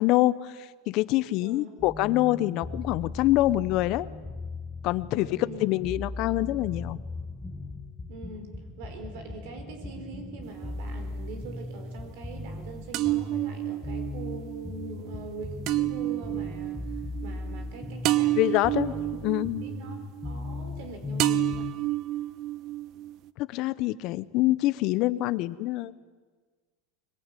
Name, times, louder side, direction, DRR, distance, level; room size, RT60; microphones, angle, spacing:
voice 1, 0.0-4.1 4.8-7.0 18.4-18.9 19.2-19.6 23.4-25.9, left 17 dB, 50° left, 16 dB, 0.9 m, -25 dB
sound 1, 1.8-21.7, left 2 dB, 5° left, 1.5 m, -38 dB
voice 2, 5.1-5.6 8.1-16.9 17.2-19.0 19.6-20.0 20.2-21.7, right 2 dB, 65° right, 6 dB, 4.3 m, -43 dB
sound 2, 10.4-11.3 12.9-20.9 21.2-23.3, right 16 dB, 45° right, 0.7 m, -30 dB
22.5 x 22.0 x 9.2 m, 1.4 s
supercardioid pair, 140°, 0 cm